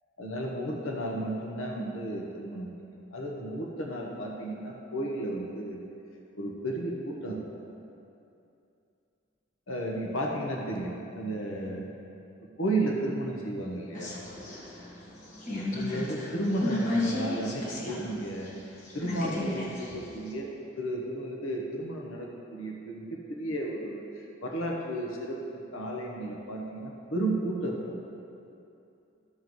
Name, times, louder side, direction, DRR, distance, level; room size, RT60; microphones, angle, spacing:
voice 1, 0.2-2.7 3.1-5.8 6.3-7.4 9.7-11.9 12.6-14.1 15.7-18.5 18.9-20.5 20.8-27.8, right 1 dB, 80° left, -1 dB, 1.1 m, -33 dB
sound 1, 13.9-18.1 18.4-20.3, left 1 dB, 40° left, 1.4 m, -34 dB
13.0 x 7.4 x 3.1 m, 2.7 s
head